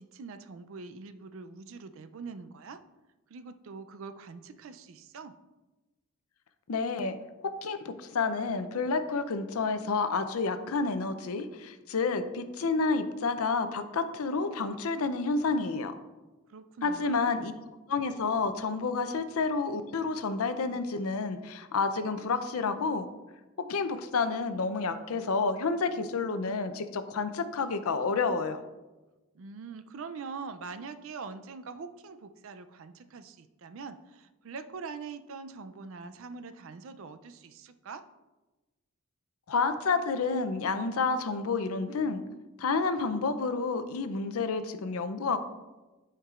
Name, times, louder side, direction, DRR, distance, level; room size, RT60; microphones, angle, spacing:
voice 1, 0.0-2.8 3.3-5.3 16.5-17.5 29.3-38.0, right 4 dB, 60° right, 10 dB, 0.4 m, -43 dB
voice 2, 6.7-7.1 7.4-15.9 16.8-17.5 17.9-23.1 23.7-28.6 39.5-42.2 42.6-45.4, left 4 dB, 75° left, 10 dB, 0.5 m, -29 dB
12.0 x 4.6 x 2.4 m, 1.1 s
head